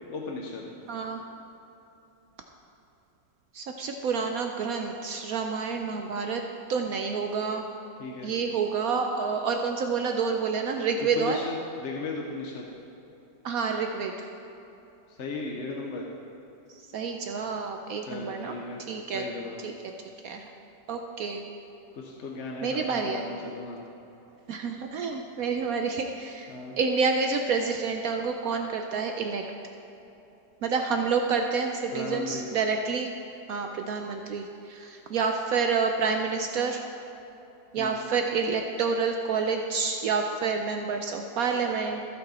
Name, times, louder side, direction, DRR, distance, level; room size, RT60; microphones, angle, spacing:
voice 1, 0.1-0.7 8.0-8.3 10.9-12.7 15.1-16.1 18.1-18.8 19.1-19.6 21.9-23.8 26.5-26.8 31.9-32.5 37.8-38.0, left 3 dB, 50° left, -1 dB, 1.0 m, -36 dB
voice 2, 0.9-1.2 3.5-6.4 6.7-7.7 8.2-11.4 13.4-14.3 16.9-18.6 18.9-19.2 19.6-19.7 20.2-20.5 20.9-21.4 22.6-23.3 24.5-29.4 30.6-33.1 33.5-36.8 37.7-42.0, right 5 dB, 70° right, 4 dB, 0.9 m, -28 dB
14.5 x 6.4 x 4.2 m, 3.0 s
omnidirectional pair, 1.9 m